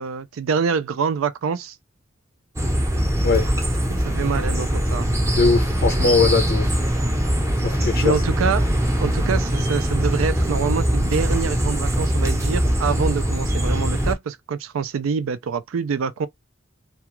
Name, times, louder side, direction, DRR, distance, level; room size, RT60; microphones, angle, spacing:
voice 1, 0.0-1.8 3.9-5.1 8.0-8.6 9.0-16.3, right 6 dB, 85° right, 0.4 m, -25 dB
sound 1, 2.6-14.1, equal, 15° right, 0.7 m, -22 dB
voice 2, 5.3-6.8 7.6-8.2, left 4 dB, 50° left, 0.5 m, -20 dB
2.3 x 2.3 x 2.9 m
head